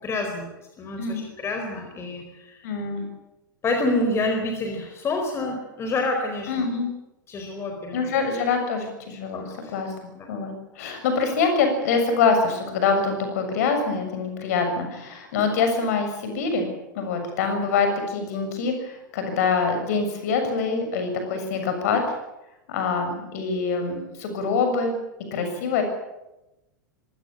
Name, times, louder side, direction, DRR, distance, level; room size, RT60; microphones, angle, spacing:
voice 1, 0.0-2.7 3.6-6.7 7.3-8.5 9.3-9.7 10.1-10.3, left 2 dB, 25° left, 4 dB, 4.5 m, -28 dB
voice 2, 2.6-3.1 6.5-6.9 7.9-9.9 10.3-16.7 17.0-22.0 22.7-25.0 25.3-25.8, left 5 dB, 50° left, 6 dB, 6.9 m, -25 dB
25.5 x 16.5 x 9.0 m, 0.94 s
figure-of-eight pair, 90°, 11 cm